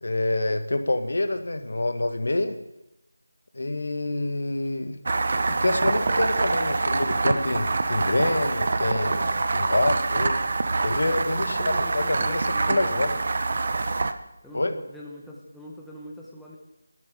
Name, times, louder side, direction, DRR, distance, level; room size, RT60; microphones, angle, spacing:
voice 1, 0.0-2.6 3.5-5.0 5.6-10.4 10.8-12.4 12.7-13.1 14.5-14.7, left 2 dB, 70° left, 9 dB, 1.9 m, -26 dB
sound 1, 5.1-14.1, right 3 dB, 45° right, 1.0 m, -25 dB
voice 2, 11.0-13.2 14.4-16.6, equal, ahead, -5 dB, 1.4 m, -42 dB
12.0 x 9.6 x 9.3 m, 0.90 s
figure-of-eight pair, 170°, 0 cm